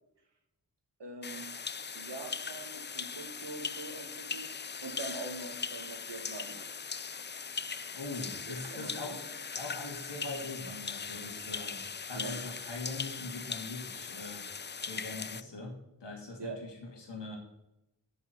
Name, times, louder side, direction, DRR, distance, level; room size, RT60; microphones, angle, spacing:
voice 1, 1.0-1.5 1.9-4.4 4.8-6.8 8.5-9.2 12.1-12.3 16.4-16.6, right 3 dB, 75° right, 3 dB, 2.2 m, -43 dB
sound 1, 1.2-15.4, left 5 dB, 25° left, 0.4 m, -40 dB
voice 2, 7.9-9.3 9.5-14.4 14.8-15.7 16.0-17.4, left 2 dB, 75° left, 1 dB, 2.6 m, -42 dB
7.3 x 7.0 x 7.8 m, 0.90 s
cardioid pair, 45°, 42 cm